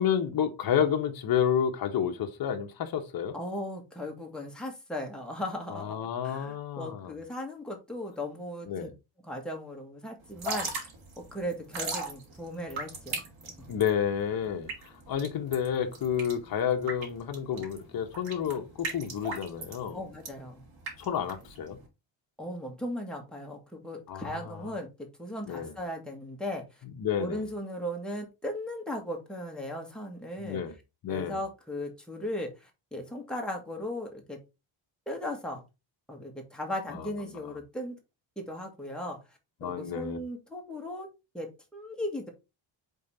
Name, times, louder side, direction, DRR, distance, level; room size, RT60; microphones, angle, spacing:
voice 1, 0.0-3.4 5.7-7.1 8.7-8.9 13.7-20.0 21.0-21.8 24.1-24.7 25.5-25.7 27.0-27.4 30.4-30.7 31.0-31.4 36.9-37.0 39.6-40.2, left 8 dB, 45° left, 1.3 m, -30 dB
voice 2, 3.3-6.0 6.2-8.9 9.2-10.9 11.2-13.2 19.9-20.6 22.4-26.8 27.2-30.6 31.1-34.4 35.1-35.6 36.1-38.0 38.4-39.2 39.6-41.1 41.3-42.3, left 1 dB, ahead, 1.6 m, -37 dB
Drip / Trickle dribble, 10.3-21.9, right 3 dB, 70° right, 3.3 m, -38 dB
5.4 x 3.9 x 5.4 m
cardioid pair, 175°, 49 cm